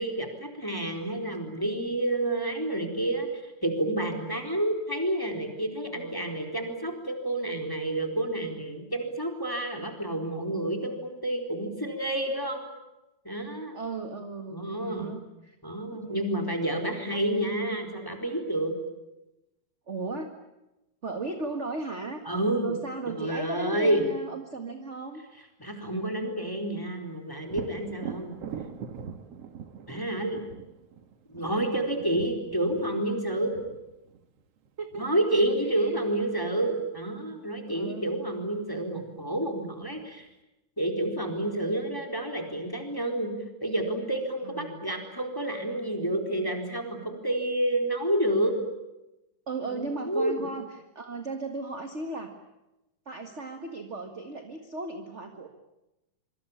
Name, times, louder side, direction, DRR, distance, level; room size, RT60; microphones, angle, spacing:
voice 1, 0.0-12.6 13.2-13.8 14.5-15.1 15.6-18.7 22.3-22.7 23.1-24.0 25.6-28.4 29.9-30.4 31.3-33.6 34.9-40.3 40.8-43.3 43.6-48.5 49.7-50.3, right 1 dB, 5° left, 4 dB, 3.9 m, -29 dB
voice 2, 13.7-15.6 15.9-16.4 17.1-17.2 19.9-20.3 21.0-22.2 22.6-25.2 34.8-35.2 35.7-36.0 37.7-38.1 44.4-44.8 49.5-52.3 53.0-55.5, right 3 dB, 30° right, 6 dB, 1.7 m, -36 dB
Thunder, 27.5-35.2 38.8-38.9 39.4-40.3, right 7 dB, 55° right, 2.4 m, -43 dB
26.0 x 24.5 x 8.7 m, 0.94 s
omnidirectional pair, 3.5 m